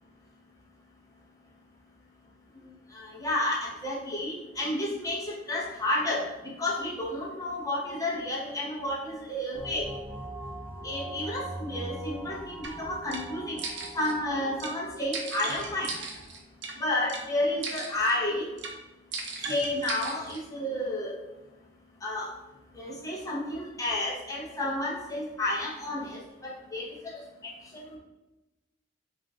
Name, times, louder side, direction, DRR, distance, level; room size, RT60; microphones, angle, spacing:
voice 1, 2.9-6.3 6.6-9.9 10.8-13.6 13.9-15.9 16.8-18.4 19.5-21.1 22.0-22.3 22.7-28.0, left 1 dB, 20° left, -4 dB, 0.8 m, -31 dB
sound 1, 9.5-16.0, right 1 dB, 10° right, 0.3 m, -41 dB
sound 2, 12.6-12.7 13.1-13.2 13.6-14.1 14.6-14.7 15.1-16.7 17.1-17.2 17.6-18.2 18.6-18.7 19.1-20.4, right 4 dB, 65° right, 0.6 m, -37 dB
3.6 x 2.6 x 3.6 m, 1.0 s
head